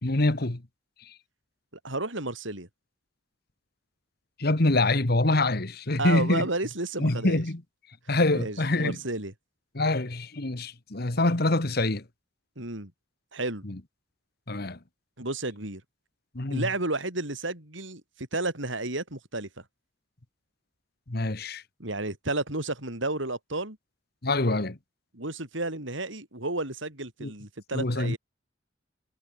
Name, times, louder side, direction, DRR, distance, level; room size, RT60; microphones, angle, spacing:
voice 1, 0.0-0.6 4.4-6.5 7.0-7.6 8.1-9.0 9.7-12.0 13.6-13.8 14.5-14.8 16.3-16.7 21.1-21.6 24.2-24.8 27.2-27.3 27.7-28.2, left 2 dB, 50° left, 1.5 m, -25 dB
voice 2, 1.8-2.7 6.0-7.4 8.3-9.3 12.6-12.9 13.3-13.6 15.2-15.8 16.5-19.6 21.8-23.8 25.1-28.2, right 2 dB, 75° right, 6.4 m, -32 dB
head